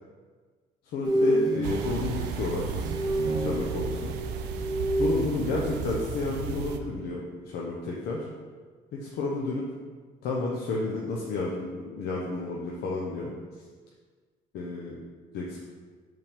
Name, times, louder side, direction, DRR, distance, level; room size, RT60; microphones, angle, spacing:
voice 1, 0.8-2.7 3.4-4.1 5.0-8.3 8.9-9.6 10.2-13.6 14.5-15.0 15.3-15.7, left 3 dB, 75° left, -3 dB, 0.8 m, -31 dB
sound 1, 1.0-6.2 6.4-6.7, right 1 dB, 25° right, 0.7 m, -29 dB
sound 2, 1.6-6.8, right 6 dB, 85° right, 0.5 m, -34 dB
5.6 x 3.5 x 5.2 m, 1.5 s
cardioid pair, 110°, 17 cm